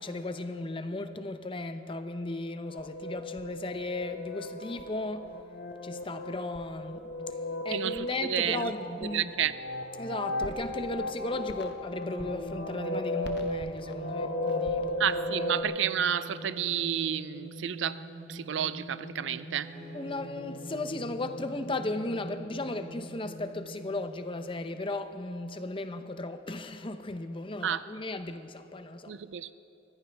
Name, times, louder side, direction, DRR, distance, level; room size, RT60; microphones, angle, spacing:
voice 1, 0.0-5.4 5.8-7.1 7.6-9.3 10.0-15.0 15.3-15.6 19.9-29.2, left 2 dB, 30° left, 0.7 m, -36 dB
sound 1, 2.7-15.6, left 1 dB, 60° left, 1.0 m, -35 dB
voice 2, 7.7-8.7 9.1-9.5 15.0-18.0 18.3-19.7 27.6-27.8 29.1-29.5, right 9 dB, 80° right, 0.5 m, -31 dB
sound 2, 12.2-25.0, right 1 dB, 5° right, 4.7 m, -45 dB
Bowed string instrument, 19.5-23.1, right 1 dB, 35° right, 3.1 m, -50 dB
23.5 x 16.0 x 3.4 m
head